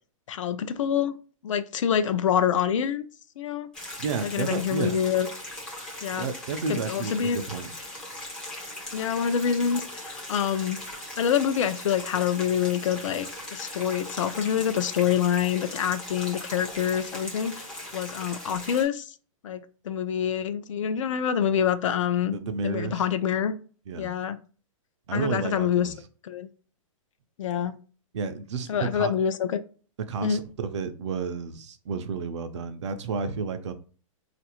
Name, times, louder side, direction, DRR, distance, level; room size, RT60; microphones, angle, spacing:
voice 1, 0.3-1.1 1.4-3.1 3.4-3.7 4.2-5.3 6.0-6.3 6.7-7.4 8.9-10.8 11.2-13.3 13.5-17.7 17.9-19.1 19.4-22.4 22.6-23.5 24.0-24.4 25.1-25.9 26.2-26.5 27.4-27.7 28.7-29.6 30.2-30.4, left 8 dB, 65° left, 0.5 m, -26 dB
sound 1, 3.7-18.8, left 1 dB, 5° left, 0.4 m, -39 dB
voice 2, 4.0-5.0 6.2-7.7 22.2-23.1 23.9-24.1 25.1-25.9 28.1-29.1 30.1-33.7, right 5 dB, 55° right, 0.5 m, -31 dB
4.0 x 2.5 x 2.9 m
hypercardioid pair, 175°, 18 cm